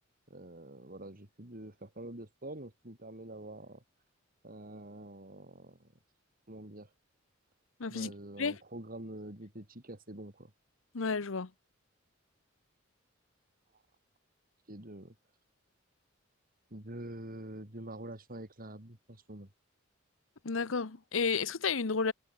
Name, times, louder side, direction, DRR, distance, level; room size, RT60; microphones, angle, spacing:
voice 1, 0.3-3.8 4.4-5.9 6.5-6.9 7.9-10.5 13.7-13.8 14.7-15.1 16.7-19.5, right 1 dB, 45° right, 4.3 m, -46 dB
voice 2, 7.8-8.1 8.4-8.5 10.9-11.5 20.4-22.1, left 5 dB, 70° left, 0.9 m, -31 dB
head